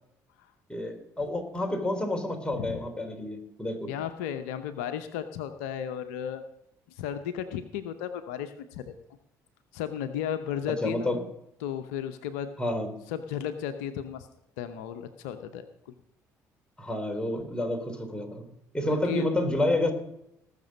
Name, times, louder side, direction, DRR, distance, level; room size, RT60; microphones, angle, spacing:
voice 1, 0.7-3.9 10.8-11.2 12.6-12.9 16.8-18.5 18.7-19.9, left 1 dB, 10° left, 4 dB, 3.7 m, -29 dB
voice 2, 2.5-2.8 3.9-6.4 7.0-8.9 9.7-11.1 11.6-12.5 13.1-14.3 14.6-15.9 18.9-19.3, left 9 dB, 80° left, 9 dB, 0.7 m, -34 dB
18.5 x 6.8 x 5.3 m, 0.81 s
hypercardioid pair, 55°, 9 cm